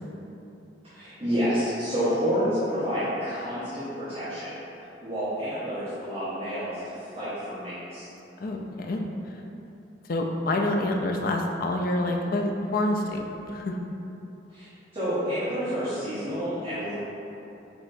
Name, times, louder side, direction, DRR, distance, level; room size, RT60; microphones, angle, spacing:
voice 1, 0.9-4.6 5.0-8.1 14.5-14.7 14.9-17.0, equal, 35° right, -14 dB, 1.2 m, -29 dB
voice 2, 8.4-9.0 10.1-13.8, left 1 dB, 55° left, 2 dB, 0.4 m, -27 dB
6.3 x 2.9 x 2.6 m, 2.9 s
head